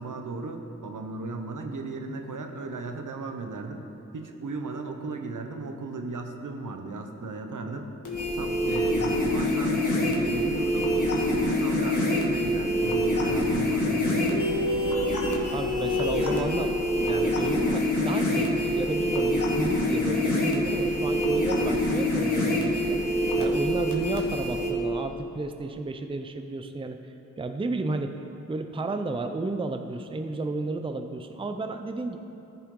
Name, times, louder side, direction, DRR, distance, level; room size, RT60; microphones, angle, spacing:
voice 1, 0.0-3.8 4.1-7.9 8.3-14.4, right 3 dB, 70° right, 4 dB, 0.9 m, -36 dB
sound 1, 8.0-24.7, left 1 dB, 70° left, 1.6 m, -25 dB
voice 2, 15.5-16.7 17.0-23.0 23.4-27.0 27.4-28.2 28.5-32.2, right 3 dB, 15° right, 7 dB, 0.5 m, -32 dB
13.5 x 5.7 x 3.8 m, 2.9 s
cardioid pair, 50°, 32 cm